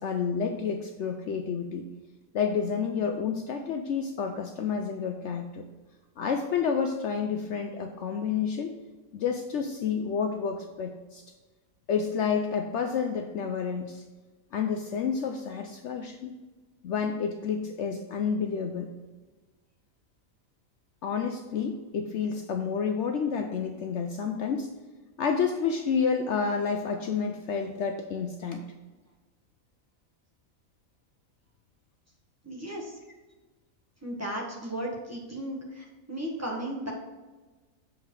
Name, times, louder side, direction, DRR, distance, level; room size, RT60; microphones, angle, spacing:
voice 1, 0.0-1.9 2.3-5.6 6.2-8.8 9.1-11.2 11.9-14.0 14.5-16.4 16.8-18.9 21.0-24.7 25.2-28.6, left 6 dB, 65° left, 5 dB, 0.8 m, -29 dB
voice 2, 32.4-32.9 34.0-36.9, right 1 dB, 10° right, -3 dB, 1.3 m, -35 dB
7.3 x 4.8 x 4.6 m, 1.2 s
omnidirectional pair, 1.4 m